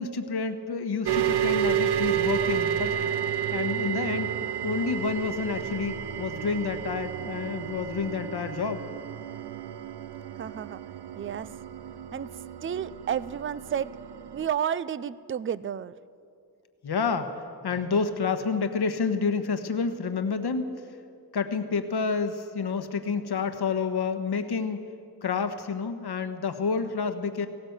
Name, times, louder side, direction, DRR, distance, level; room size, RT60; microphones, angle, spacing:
voice 1, 0.0-2.9 3.5-4.3 4.6-8.8 16.8-17.3 17.6-20.7 21.3-24.8 25.2-27.5, left 5 dB, 75° left, 8 dB, 1.4 m, -29 dB
sound 1, 1.1-14.5, right 9 dB, 80° right, 0.7 m, -31 dB
voice 2, 10.4-10.8 11.2-11.5 12.1-12.3 12.6-13.9 14.3-16.0, right 8 dB, 35° right, 18 dB, 0.4 m, -31 dB
18.0 x 18.0 x 8.1 m, 2.5 s
wide cardioid pair, 180°, 39 cm